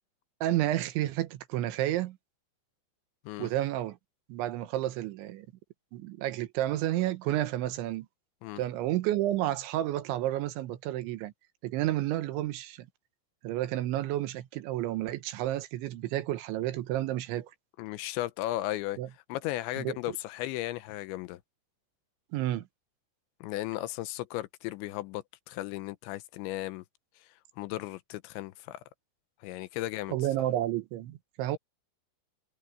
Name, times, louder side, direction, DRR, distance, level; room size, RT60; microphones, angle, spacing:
voice 1, 0.4-2.2 3.4-4.0 4.3-5.5 5.9-8.1 8.6-11.3 11.6-12.9 13.4-17.5 19.0-19.1 19.8-20.2 22.3-22.7 30.1-31.6, right 14 dB, 80° right, 3.5 m, -31 dB
voice 2, 17.8-19.0 19.3-21.4 23.4-26.8 27.6-28.8 29.4-30.2, left 16 dB, 90° left, 3.0 m, -35 dB
omnidirectional pair, 5.4 m